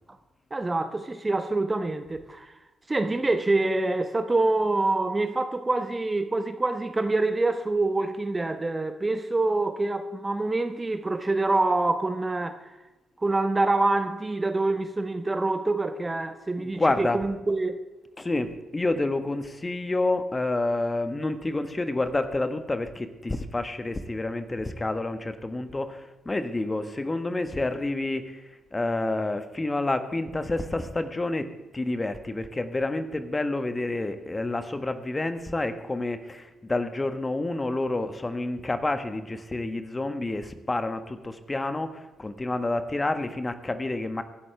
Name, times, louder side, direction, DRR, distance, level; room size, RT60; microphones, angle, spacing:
voice 1, 0.5-2.5 2.9-12.6 13.2-17.8, right 2 dB, 25° right, 1.1 m, -26 dB
voice 2, 16.6-17.3 18.2-44.2, left 2 dB, 25° left, 1.4 m, -29 dB
24.0 x 11.0 x 3.4 m
figure-of-eight pair, 40°, 0 cm